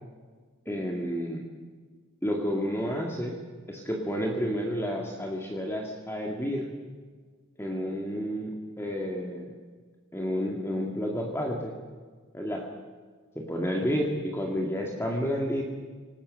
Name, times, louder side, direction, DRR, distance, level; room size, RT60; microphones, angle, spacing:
voice 1, 0.7-1.4 2.2-3.4 3.7-6.7 7.6-9.5 10.1-11.7 12.3-12.7 13.4-15.6, equal, 10° left, 0 dB, 2.2 m, -30 dB
27.0 x 19.5 x 6.5 m, 1.5 s
head